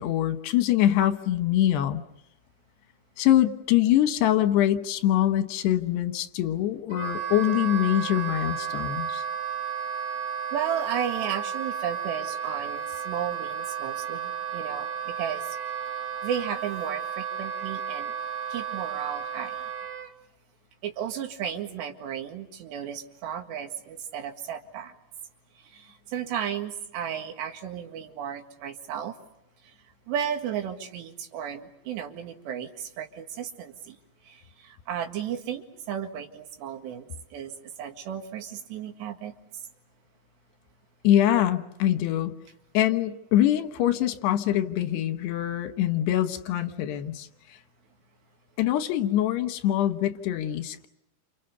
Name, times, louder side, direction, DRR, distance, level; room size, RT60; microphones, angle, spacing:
voice 1, 0.0-2.0 3.2-9.2 41.0-42.3 42.7-47.3 48.6-50.9, left 12 dB, 80° left, 8 dB, 3.3 m, -24 dB
Wind instrument woodwind instrument, 6.9-20.1, right 8 dB, 50° right, 3.3 m, -33 dB
voice 2, 10.5-15.6 16.2-18.1 18.5-19.7 20.8-24.9 25.6-29.2 29.6-29.7 30.1-34.0 34.3-39.3, right 8 dB, 90° right, 5 dB, 4.1 m, -34 dB
29.0 x 28.0 x 6.8 m, 0.81 s
omnidirectional pair, 4.8 m